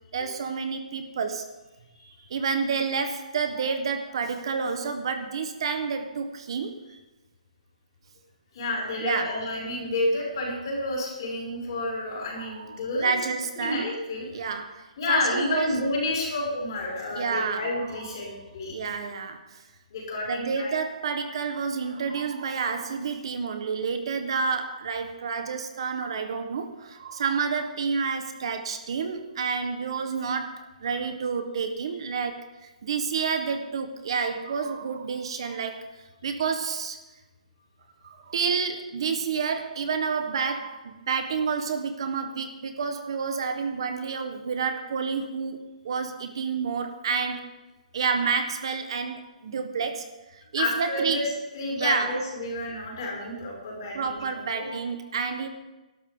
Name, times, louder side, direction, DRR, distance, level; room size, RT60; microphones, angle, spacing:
voice 1, 0.1-1.5 2.3-6.7 9.0-9.4 12.4-13.9 14.3-15.8 17.1-17.7 18.0-18.1 18.7-19.6 20.3-35.8 36.2-37.0 38.0-45.6 45.8-47.5 47.9-50.1 50.3-51.2 51.8-52.2 53.9-55.5, right 5 dB, 40° right, 7 dB, 1.3 m, -29 dB
voice 2, 1.9-2.2 8.5-13.1 13.6-14.4 15.0-18.7 19.9-20.7 50.6-51.3 51.5-54.8, left 2 dB, 35° left, -3 dB, 6.2 m, -30 dB
20.5 x 12.5 x 3.9 m, 1.1 s
hypercardioid pair, 180°, 4 cm